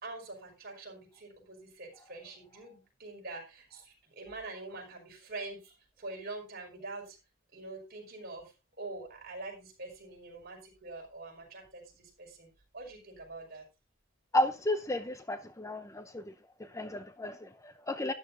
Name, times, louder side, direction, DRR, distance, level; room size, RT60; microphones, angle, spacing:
voice 1, 0.0-7.2 7.5-12.5 12.7-13.6, right 2 dB, 50° right, 5.3 m, -45 dB
voice 2, 14.3-16.3 16.6-18.1, left 1 dB, 15° left, 0.7 m, -33 dB
13.0 x 10.5 x 2.7 m
head